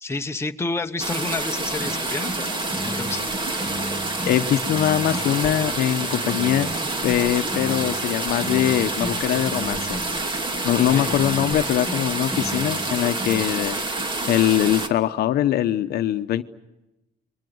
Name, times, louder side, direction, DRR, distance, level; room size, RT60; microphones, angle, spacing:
voice 1, 0.0-2.6 2.8-3.2 10.9-11.1, left 3 dB, 15° left, 5 dB, 1.2 m, -29 dB
sound 1, 1.0-14.9, right 2 dB, 30° right, 2.5 m, -28 dB
sound 2, 1.8-13.4, right 1 dB, 5° right, 2.2 m, -35 dB
voice 2, 4.2-6.7 7.0-10.0 10.6-13.8 14.3-16.4, left 12 dB, 70° left, 10 dB, 1.0 m, -22 dB
29.5 x 23.0 x 7.9 m, 0.98 s
cardioid pair, 110°, 17 cm